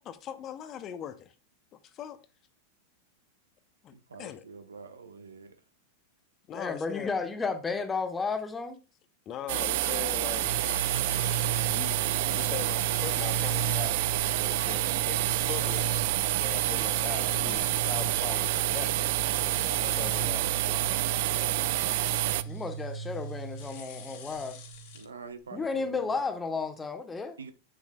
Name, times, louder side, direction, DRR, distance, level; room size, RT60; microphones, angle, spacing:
voice 1, 0.0-1.3 1.9-2.2 3.8-4.4 6.5-7.1 9.3-10.5 11.6-12.0 12.3-14.1 14.4-16.1 16.4-21.1 21.3-22.0, left 10 dB, 30° left, 0.7 m, -41 dB
voice 2, 3.9-5.5 24.9-26.3 27.4-27.5, right 4 dB, 70° right, 0.9 m, -46 dB
voice 3, 6.5-8.8 22.5-24.6 25.5-27.4, left 4 dB, 15° left, 1.2 m, -33 dB
sound 1, 9.5-22.4, right 16 dB, 50° right, 0.3 m, -28 dB
sound 2, 10.4-25.0, right 4 dB, 50° left, 1.7 m, -36 dB
8.7 x 7.4 x 2.3 m
figure-of-eight pair, 90°, 0 cm